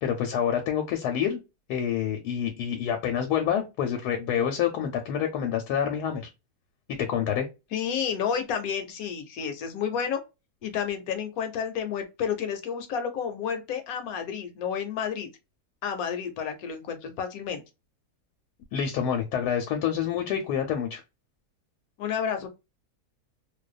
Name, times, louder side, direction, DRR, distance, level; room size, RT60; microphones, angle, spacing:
voice 1, 0.0-1.4 1.7-6.3 6.9-7.5 18.7-21.0, left 8 dB, 90° left, 1.1 m, -27 dB
voice 2, 7.7-10.2 10.6-15.3 15.8-17.6 22.0-22.5, left 7 dB, 70° left, 1.0 m, -30 dB
2.6 x 2.2 x 2.2 m
omnidirectional pair, 1.7 m